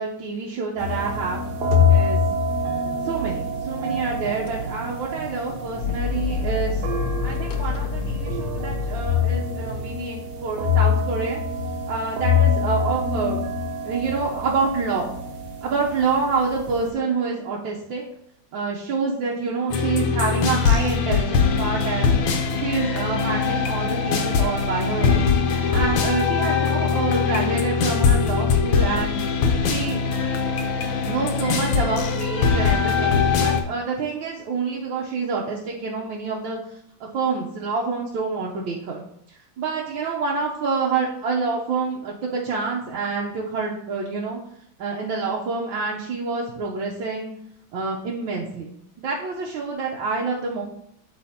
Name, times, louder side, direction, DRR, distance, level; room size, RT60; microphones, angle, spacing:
voice 1, 0.0-1.4 1.9-2.2 3.0-6.9 7.2-11.4 11.9-15.1 15.6-18.0 18.5-22.1 22.5-25.2 25.7-29.2 29.6-30.0 31.0-39.0 39.3-44.4 44.8-47.3 47.7-50.6, right 4 dB, 85° right, -3 dB, 1.6 m, -27 dB
sound 1, 0.8-16.9, left 4 dB, 60° right, 1.5 m, -25 dB
sound 2, 4.5-4.6 5.6-9.3, left 7 dB, 60° left, 1.0 m, -28 dB
sound 3, 19.7-33.6, left 5 dB, 85° left, 1.6 m, -21 dB
12.0 x 4.0 x 2.8 m, 0.72 s
omnidirectional pair, 2.1 m